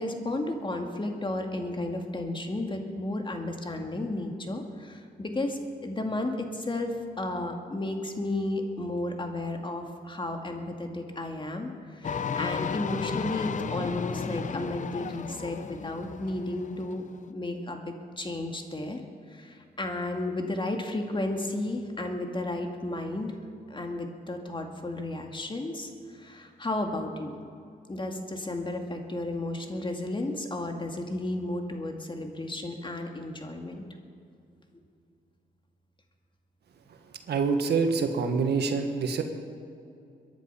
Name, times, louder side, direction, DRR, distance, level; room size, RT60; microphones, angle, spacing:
voice 1, 0.0-19.0 19.3-23.3 23.7-27.3 27.9-33.8, left 2 dB, 30° left, 3 dB, 2.2 m, -33 dB
sound 1, 12.0-17.3, left 6 dB, 50° left, 0.6 m, -34 dB
voice 2, 37.3-39.2, right 5 dB, 85° right, 6 dB, 1.5 m, -26 dB
23.0 x 10.5 x 5.7 m, 2.5 s
cardioid pair, 70°, 17 cm